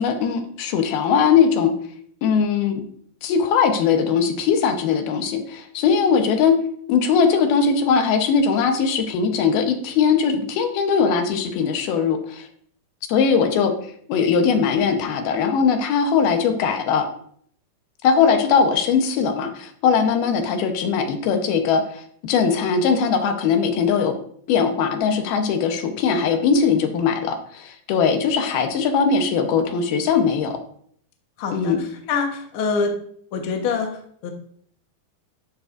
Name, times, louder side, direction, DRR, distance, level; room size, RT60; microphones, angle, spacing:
voice 1, 0.0-1.7 2.2-2.8 3.2-6.6 6.9-12.5 13.1-13.8 14.1-17.1 18.0-24.2 24.5-30.6 31.5-31.8, left 6 dB, 80° left, 5 dB, 2.9 m, -20 dB
voice 2, 31.4-33.0 33.3-34.3, left 4 dB, 65° left, 2 dB, 1.2 m, -25 dB
11.5 x 9.7 x 2.6 m, 0.62 s
omnidirectional pair, 4.3 m